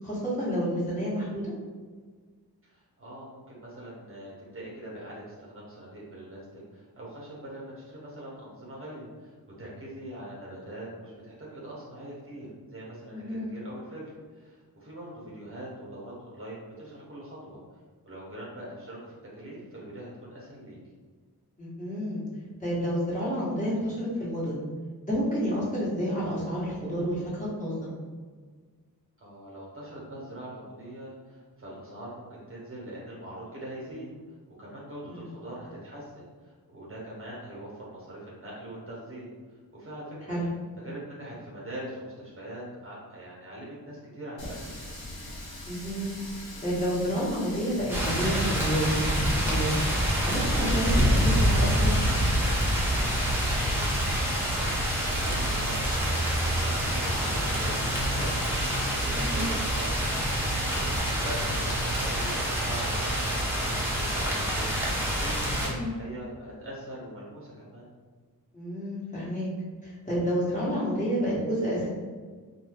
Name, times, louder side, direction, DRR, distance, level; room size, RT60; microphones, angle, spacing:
voice 1, 0.0-1.5 13.1-13.5 21.6-22.2 22.6-24.6 25.0-27.9 35.0-35.3 40.3-40.5 45.7-46.1 46.6-49.7 50.2-51.9 59.1-59.4 65.7-66.0 68.5-69.5 69.8-71.9, equal, 20° left, -9 dB, 1.2 m, -29 dB
voice 2, 2.6-9.3 9.6-17.6 18.1-19.0 19.3-20.8 29.2-34.1 34.6-40.4 40.8-45.0 53.7-64.7 65.1-67.9, right 1 dB, 35° right, -6 dB, 0.9 m, -42 dB
Water tap faucet, 44.4-61.0, left 1 dB, 75° left, 0.9 m, -42 dB
sound 1, 47.9-65.7, equal, 5° right, 0.7 m, -26 dB
2.6 x 2.3 x 3.4 m, 1.5 s
wide cardioid pair, 75°, 38 cm